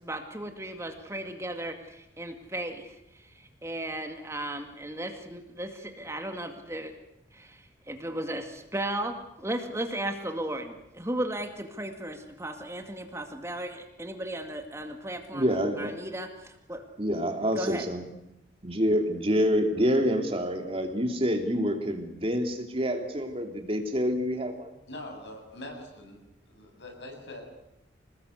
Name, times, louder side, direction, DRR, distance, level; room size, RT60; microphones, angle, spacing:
voice 1, 0.0-3.0 3.6-6.9 7.3-7.6 7.9-16.8 17.6-17.9, right 1 dB, 15° right, 5 dB, 2.2 m, -35 dB
voice 2, 15.3-16.0 17.0-18.0 18.6-24.7, equal, 30° right, 5 dB, 3.0 m, -27 dB
voice 3, 24.9-26.2 26.5-27.4, left 1 dB, 70° left, 3 dB, 7.7 m, -43 dB
27.0 x 19.5 x 8.2 m, 0.85 s
head